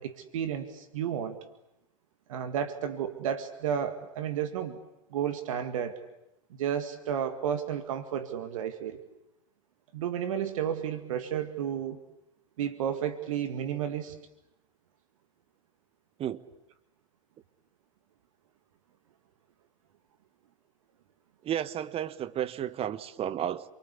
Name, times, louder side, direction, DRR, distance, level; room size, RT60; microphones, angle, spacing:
voice 1, 0.0-1.4 2.3-4.8 5.1-5.9 6.6-9.0 9.9-12.0 12.6-14.2, right 9 dB, 70° right, 2.0 m, -32 dB
voice 2, 21.4-23.7, right 10 dB, 35° right, 1.4 m, -32 dB
28.5 x 24.0 x 8.5 m
hypercardioid pair, 95°, 18 cm